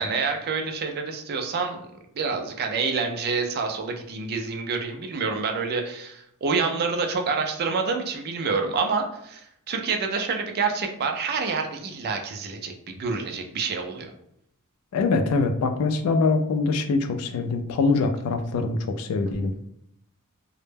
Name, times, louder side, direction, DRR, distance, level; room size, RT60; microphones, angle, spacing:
voice 1, 0.0-1.8 2.1-14.1, right 4 dB, 45° right, 4 dB, 0.4 m, -27 dB
voice 2, 14.9-19.5, left 3 dB, 70° left, 7 dB, 0.3 m, -23 dB
2.1 x 2.1 x 3.2 m, 0.73 s
head